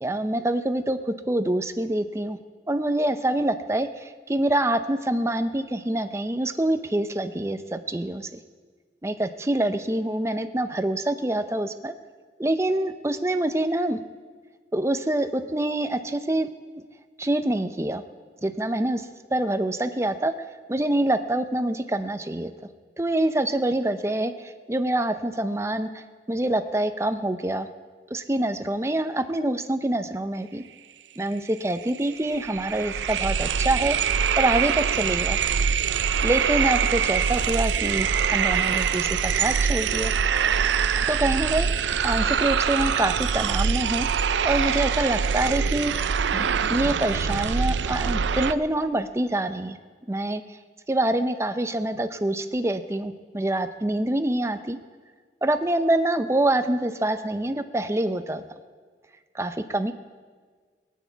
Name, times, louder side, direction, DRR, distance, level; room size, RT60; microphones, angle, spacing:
voice 1, 0.0-2.4 2.7-8.3 9.0-11.9 12.4-14.0 14.7-16.5 16.7-16.8 17.2-18.0 18.4-22.5 23.0-27.7 28.1-30.6 31.2-34.0 34.4-35.4 36.2-40.1 41.1-44.1 44.4-45.9 46.3-49.8 50.1-50.4 50.9-54.8 55.4-58.4 59.3-59.9, right 1 dB, 15° right, 9 dB, 0.6 m, -26 dB
sound 1, 31.5-31.6 31.9-48.5, right 7 dB, 85° right, 0.5 m, -24 dB
19.0 x 9.4 x 4.6 m, 1.6 s
head